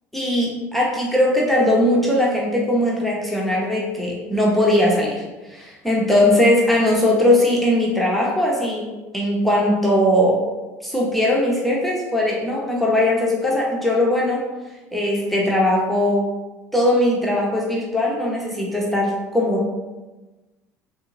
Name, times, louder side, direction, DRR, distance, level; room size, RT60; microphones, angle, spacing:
voice 1, 0.1-8.9 9.1-10.4 10.8-14.4 14.9-16.3 16.7-19.7, left 1 dB, ahead, -4 dB, 0.9 m, -19 dB
6.7 x 2.6 x 2.5 m, 1.2 s
figure-of-eight pair, 65°, 9 cm